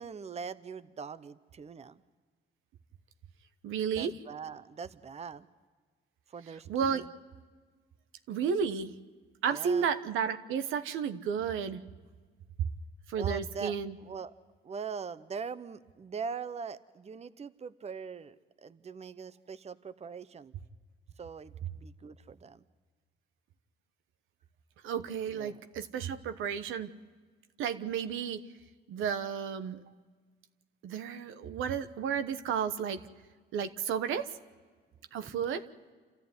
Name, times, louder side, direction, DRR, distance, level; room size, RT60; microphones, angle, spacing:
voice 1, 0.0-2.0 4.0-5.5 6.3-7.1 9.5-9.9 13.2-13.7 14.0-14.3 14.6-20.5 21.2-22.6 25.3-25.6 35.2-35.4, right 5 dB, 35° right, 13 dB, 0.8 m, -42 dB
voice 2, 3.6-4.1 6.7-7.0 8.3-8.9 9.4-11.8 13.1-13.9 24.8-26.9 27.6-28.4 28.9-29.8 30.8-33.0 33.5-34.3 35.1-35.6, right 7 dB, 85° right, 9 dB, 1.1 m, -32 dB
28.0 x 14.0 x 9.5 m, 1.5 s
cardioid pair, 90°, 20 cm